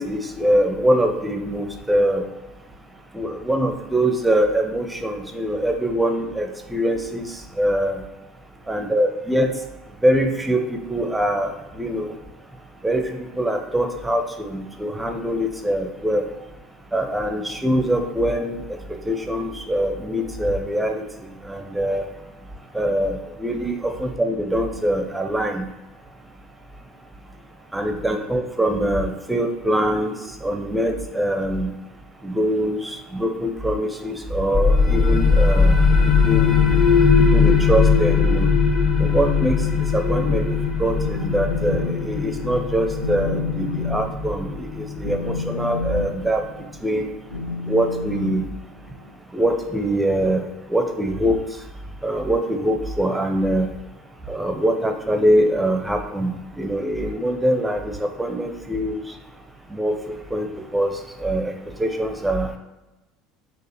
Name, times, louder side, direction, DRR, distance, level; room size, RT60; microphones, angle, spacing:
voice 1, 0.0-2.3 3.1-7.3 7.6-8.0 8.7-9.5 10.0-12.1 12.8-16.3 16.9-18.6 18.9-21.0 21.5-22.1 22.7-25.7 27.7-30.1 30.4-31.7 32.2-35.8 36.0-36.5 37.2-38.5 39.0-39.6 39.9-40.4 40.8-46.4 46.8-47.1 47.7-48.4 49.3-50.4 50.7-51.4 52.0-53.7 54.3-59.0 59.7-60.5 60.7-60.9 61.2-61.5 61.8-62.6, right 1 dB, 10° right, 5 dB, 0.6 m, -23 dB
sound 1, 34.5-45.9, left 5 dB, 30° left, 0.7 m, -19 dB
Telephone, 41.0-42.0 42.3-42.6 43.0-49.1, left 4 dB, 80° left, 0.3 m, -30 dB
6.1 x 2.5 x 2.9 m, 1.0 s
figure-of-eight pair, 65°, 0 cm